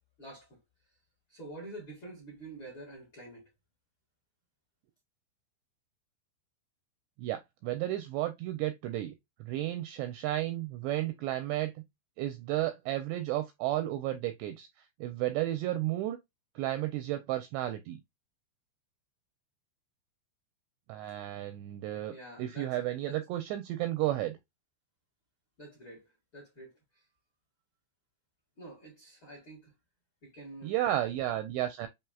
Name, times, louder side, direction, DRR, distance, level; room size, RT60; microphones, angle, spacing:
voice 1, 0.2-0.6 1.3-3.5 22.1-22.8 23.0-23.2 25.6-26.7 28.6-29.7 30.2-30.7, right 1 dB, 50° left, 1.5 m, -47 dB
voice 2, 7.2-9.1 9.4-11.7 12.2-14.7 15.0-16.2 16.6-18.0 20.9-24.4 30.6-31.9, right 14 dB, 85° right, 2.5 m, -33 dB
7.1 x 3.0 x 2.3 m
omnidirectional pair, 5.6 m